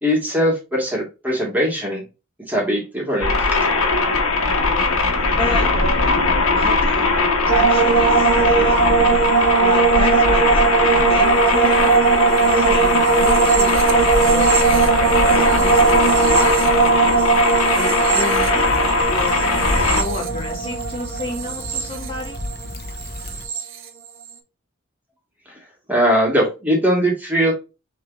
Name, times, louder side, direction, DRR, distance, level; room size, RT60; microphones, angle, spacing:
voice 1, 0.0-2.0 2.5-3.6 25.5-25.6 25.9-27.5, equal, 10° right, -2 dB, 1.7 m, -20 dB
sound 1, 3.2-20.0, left 3 dB, 85° left, 1.2 m, -19 dB
voice 2, 5.4-5.7 6.5-8.8 9.6-11.9 12.5-15.0 15.3-17.3 17.7-19.4 19.8-22.4, left 1 dB, 25° left, -2 dB, 1.6 m, -30 dB
sound 2, 7.5-22.7 23.0-23.6, right 5 dB, 65° right, 1.0 m, -19 dB
Stream / Traffic noise roadway noise / Trickle dribble, 18.3-23.5, left 1 dB, 45° left, 0.8 m, -31 dB
6.3 x 3.3 x 2.5 m, 0.29 s
head